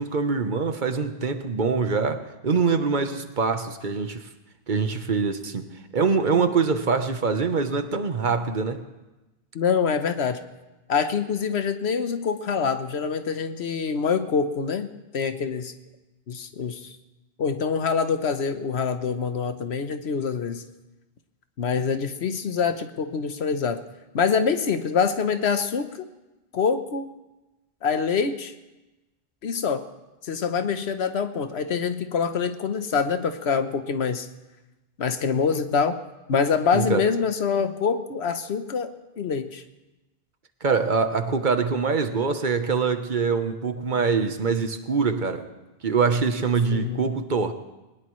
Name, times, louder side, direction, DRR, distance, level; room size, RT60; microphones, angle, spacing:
voice 1, 0.0-4.3 4.7-5.7 5.9-8.8 36.7-37.1 40.6-45.5 45.8-47.5, right 5 dB, 50° right, 8 dB, 1.1 m, -24 dB
voice 2, 9.5-10.4 10.9-14.9 15.1-15.7 16.3-16.9 17.4-20.6 21.6-23.8 24.1-26.1 26.5-27.1 27.8-28.5 29.4-29.8 30.2-34.3 35.0-36.0 36.3-38.9 39.2-39.6 46.7-47.0, left 6 dB, 85° left, 9 dB, 1.2 m, -25 dB
21.0 x 19.0 x 3.2 m, 1.1 s
omnidirectional pair, 1.0 m